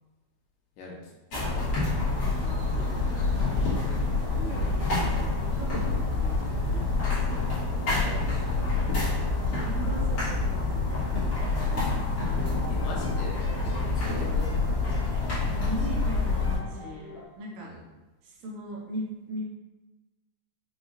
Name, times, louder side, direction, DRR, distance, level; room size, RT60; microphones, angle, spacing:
voice 1, 0.8-1.8 7.9-8.9 12.7-15.1 17.6-17.8, left 2 dB, 80° left, -2 dB, 1.9 m, -42 dB
sound 1, 1.3-16.6, left 3 dB, 45° left, 1.4 m, -27 dB
voice 2, 2.1-3.1 4.0-7.3 9.4-11.8 12.2-12.8 15.5-17.7 18.2-19.5, right 1 dB, 75° right, -2 dB, 1.9 m, -40 dB
sound 2, 3.2-8.6, right 1 dB, 60° right, 1.7 m, -44 dB
sound 3, 11.1-17.2, left 1 dB, 60° left, 1.9 m, -45 dB
5.2 x 3.0 x 2.5 m, 1.1 s
omnidirectional pair, 3.3 m